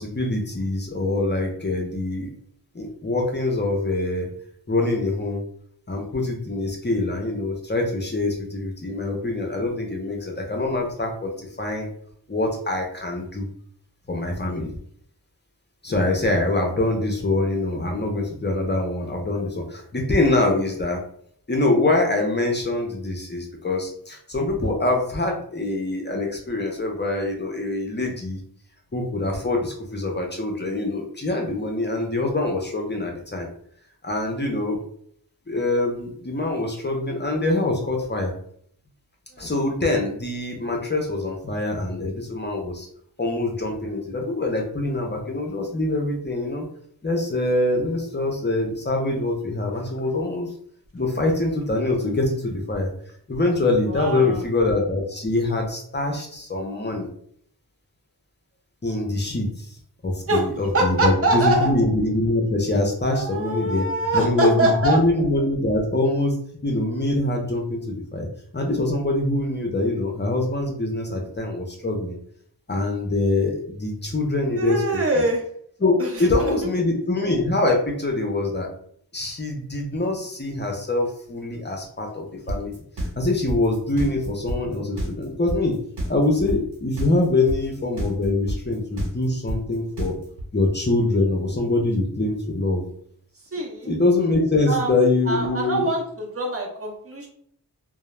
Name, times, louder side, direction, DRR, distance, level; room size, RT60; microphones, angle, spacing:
voice 1, 0.0-2.3 2.7-4.3 4.7-5.4 5.9-11.9 12.3-13.5 14.1-14.7 15.8-21.0 21.5-28.4 28.9-33.5 34.0-34.8 35.5-38.3 39.4-42.9 43.2-46.7 47.0-50.5 50.9-52.9 53.3-57.1 58.8-59.7 60.0-63.9 64.1-66.4 66.6-68.3 68.5-72.2 72.7-75.0 75.8-78.7 79.1-82.7 83.2-85.8 86.1-90.2 90.5-92.8 93.9-95.9, left 2 dB, 25° left, 1 dB, 0.5 m, -24 dB
voice 2, 53.9-54.4 60.3-60.4 60.7-61.7 63.0-65.0 74.5-75.4 76.0-76.5 93.5-93.9 94.7-94.9 95.3-97.3, right 1 dB, 35° right, 0 dB, 0.7 m, -24 dB
sound 1, 82.5-90.4, right 1 dB, 90° right, 0.9 m, -28 dB
2.2 x 2.0 x 3.0 m, 0.64 s
wide cardioid pair, 65°, 40 cm